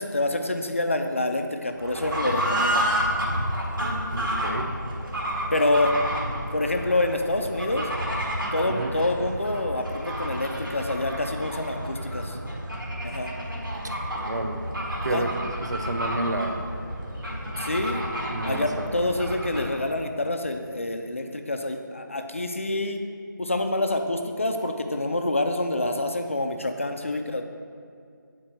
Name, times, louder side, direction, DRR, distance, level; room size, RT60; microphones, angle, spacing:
voice 1, 0.0-2.9 5.5-5.9 6.5-7.9 8.5-12.4 13.0-13.3 15.1-15.3 17.6-18.0 18.4-23.0 23.4-27.4, left 2 dB, 40° left, 5 dB, 0.4 m, -27 dB
Fowl / Bird, 1.8-19.8, equal, 80° right, 1.5 m, -30 dB
voice 2, 4.1-4.7 8.7-9.0 14.1-14.6 15.0-15.3 15.6-16.6 18.3-19.2, right 2 dB, 55° right, 5 dB, 0.6 m, -30 dB
9.0 x 4.3 x 2.9 m, 2.3 s
figure-of-eight pair, 175°, 11 cm